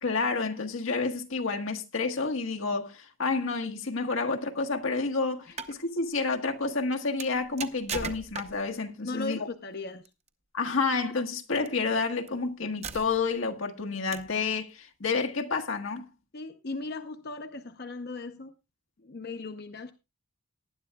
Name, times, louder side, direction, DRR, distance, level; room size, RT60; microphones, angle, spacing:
voice 1, 0.0-9.4 10.5-16.1, left 4 dB, 80° left, 1.4 m, -29 dB
sound 1, 5.4-5.8 7.2-8.8 10.1-10.3 11.5-11.7 12.3-12.4 12.8-13.4 14.1-14.4, right 5 dB, 35° right, 0.8 m, -38 dB
voice 2, 9.0-10.0 16.3-18.5 19.0-19.9, left 3 dB, 50° left, 0.7 m, -37 dB
19.0 x 10.5 x 2.3 m
head